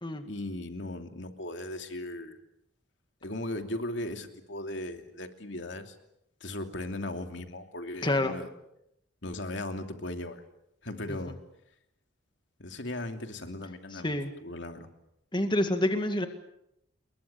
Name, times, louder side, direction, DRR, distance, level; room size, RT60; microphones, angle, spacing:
voice 1, 0.2-2.4 3.2-6.0 6.4-8.5 9.2-10.4 10.8-11.4 12.6-14.9, left 1 dB, 65° left, 6 dB, 2.8 m, -37 dB
voice 2, 8.0-8.3 11.1-11.2 13.9-14.3 15.3-16.3, left 1 dB, 25° left, 7 dB, 2.0 m, -27 dB
30.0 x 22.0 x 7.0 m, 0.79 s
head